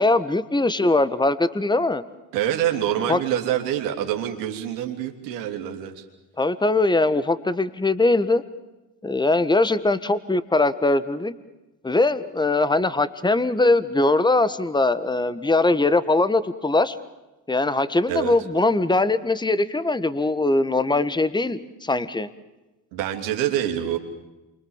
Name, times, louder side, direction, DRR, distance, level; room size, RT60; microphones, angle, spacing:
voice 1, 0.0-2.0 3.1-3.2 6.4-8.4 9.0-11.3 11.8-17.0 17.5-22.3, left 2 dB, 10° left, 14 dB, 1.5 m, -21 dB
voice 2, 2.3-6.0 18.1-18.3 22.9-24.0, right 11 dB, 80° right, 4 dB, 3.1 m, -26 dB
28.5 x 24.5 x 7.3 m, 1.1 s
hypercardioid pair, 65°, 48 cm